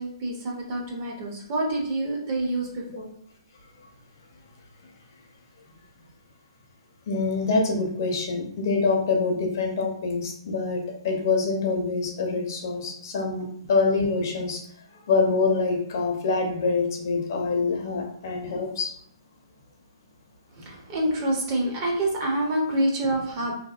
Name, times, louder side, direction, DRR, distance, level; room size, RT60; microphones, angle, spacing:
voice 1, 0.0-3.1 20.6-23.5, right 1 dB, 25° right, -1 dB, 0.5 m, -27 dB
voice 2, 7.1-14.6 15.1-18.9, left 4 dB, 40° left, 1 dB, 0.5 m, -25 dB
2.7 x 2.6 x 2.3 m, 0.64 s
hypercardioid pair, 170°, 3 cm